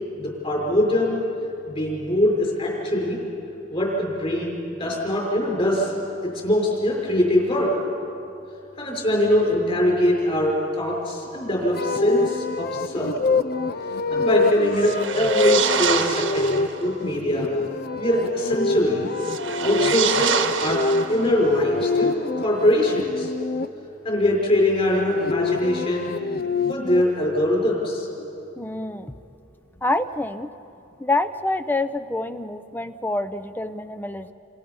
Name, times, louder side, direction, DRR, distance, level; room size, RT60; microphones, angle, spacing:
voice 1, 0.2-1.2 1.7-3.2 3.7-5.9 6.4-7.7 8.7-13.1 14.1-17.5 18.0-19.1 19.6-20.8 21.1-22.1 22.4-23.3 24.0-26.1 26.7-28.1, left 1 dB, 30° left, -3 dB, 5.7 m, -22 dB
sound 1, 11.7-23.7 24.8-27.0, left 3 dB, 50° left, 0.6 m, -26 dB
sound 2, 14.7-16.8 19.1-21.5, right 7 dB, 75° right, 1.4 m, -26 dB
voice 2, 28.6-29.1 29.8-30.5 31.0-34.3, left 2 dB, 10° left, 11 dB, 0.6 m, -26 dB
29.0 x 27.5 x 5.5 m, 2.8 s
head